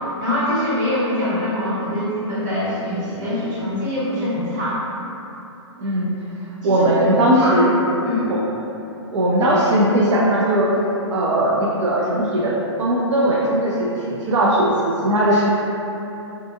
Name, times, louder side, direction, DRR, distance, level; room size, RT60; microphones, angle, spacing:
voice 1, 0.0-4.8 6.6-7.1 7.4-7.7 8.0-8.4, left 1 dB, 45° right, -8 dB, 0.9 m, -24 dB
voice 2, 5.8-6.1 6.6-7.7 8.3-8.4 9.1-10.7 11.1-12.5 12.8-15.4, right 1 dB, 80° right, -5 dB, 0.4 m, -18 dB
2.5 x 2.5 x 2.5 m, 3.0 s
hypercardioid pair, 140°, 15 cm